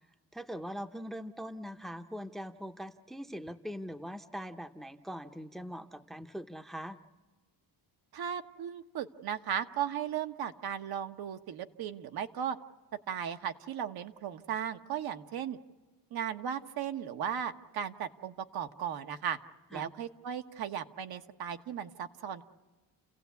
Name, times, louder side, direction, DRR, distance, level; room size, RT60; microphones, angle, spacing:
voice 1, 0.3-7.0 19.7-19.9, equal, ahead, 8 dB, 0.8 m, -42 dB
voice 2, 8.1-12.6 13.1-15.6 16.1-19.4 19.7-22.4, right 8 dB, 65° right, 7 dB, 1.2 m, -36 dB
30.0 x 16.5 x 8.3 m, 1.3 s
cardioid pair, 130°, 39 cm